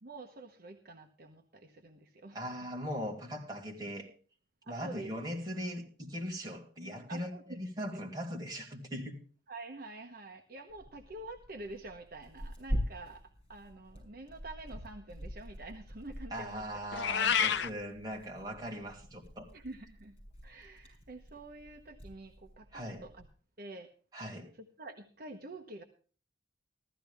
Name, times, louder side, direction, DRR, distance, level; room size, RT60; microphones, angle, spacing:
voice 1, 0.0-2.5 4.6-5.1 7.1-7.6 7.9-8.0 9.5-16.6 19.5-20.2 20.4-23.3 23.6-23.9 24.5-25.8, right 2 dB, 50° right, 3 dB, 1.0 m, -47 dB
voice 2, 2.3-4.1 4.7-9.2 16.3-19.5 22.7-23.0 24.1-24.5, equal, 20° right, -1 dB, 2.7 m, -40 dB
Tearing, 10.7-23.3, equal, 35° left, 7.1 m, -44 dB
Meow, 16.9-17.7, left 7 dB, 65° left, 0.6 m, -28 dB
15.0 x 13.5 x 3.5 m, 0.40 s
head